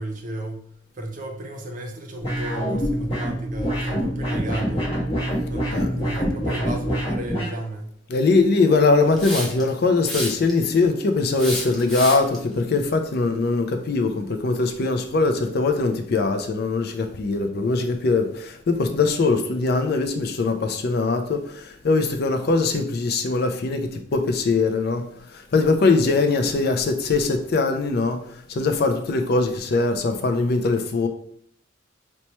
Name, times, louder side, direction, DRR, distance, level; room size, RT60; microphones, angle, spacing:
voice 1, 0.0-5.0 5.5-8.0, right 1 dB, 40° right, 0.6 m, -33 dB
sound 1, 2.2-7.5, equal, 30° left, 1.0 m, -26 dB
voice 2, 8.1-25.0 25.3-28.2 28.5-31.1, left 3 dB, 55° left, 0.4 m, -21 dB
Hiss, 9.2-9.7 10.0-10.7 11.4-12.4, equal, ahead, 0.7 m, -30 dB
3.0 x 2.2 x 4.1 m
head